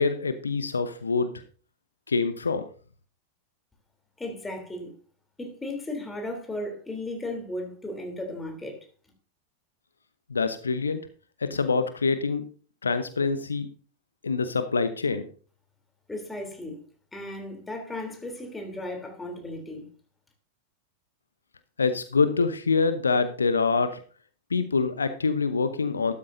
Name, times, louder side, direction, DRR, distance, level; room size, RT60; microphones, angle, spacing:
voice 1, 0.0-1.4 2.1-2.6 10.3-11.0 11.4-12.4 12.8-13.7 14.2-15.2 21.8-24.0 24.5-26.1, left 4 dB, 75° left, 0.8 m, -25 dB
voice 2, 4.2-4.9 5.4-8.8 16.1-16.8 17.1-19.9, left 1 dB, 10° left, 3.3 m, -35 dB
13.5 x 12.5 x 2.7 m
figure-of-eight pair, 90°, 0 cm